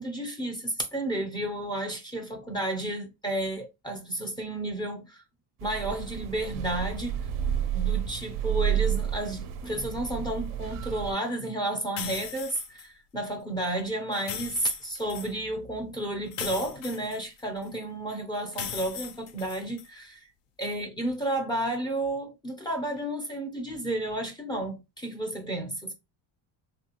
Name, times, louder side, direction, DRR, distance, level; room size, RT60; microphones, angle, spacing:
voice 1, 0.0-5.2 5.6-7.2 7.7-20.3 20.6-25.9, right 1 dB, 10° left, 0.4 m, -32 dB
sound 1, 5.6-11.1, right 10 dB, 45° right, 0.4 m, -30 dB
sound 2, 12.0-12.9 14.1-15.3 16.3-17.7 18.5-19.9, left 8 dB, 60° left, 0.6 m, -38 dB
3.4 x 2.4 x 2.8 m
cardioid pair, 155°, 49 cm